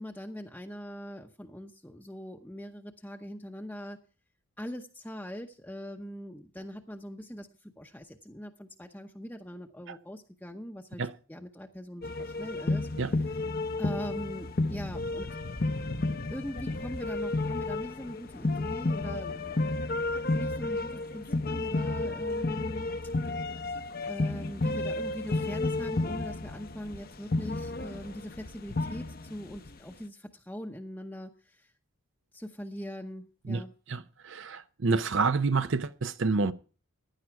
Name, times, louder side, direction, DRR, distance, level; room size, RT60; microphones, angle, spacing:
voice 1, 0.0-4.0 4.6-11.0 11.3-13.5 13.8-15.3 16.3-19.7 20.1-22.9 24.0-31.7 32.3-33.7, equal, 10° left, 0.8 m, -41 dB
sound 1, 12.0-29.8, left 2 dB, 45° left, 0.8 m, -32 dB
voice 2, 33.9-36.5, right 4 dB, 60° right, 0.6 m, -28 dB
16.0 x 10.5 x 4.6 m
head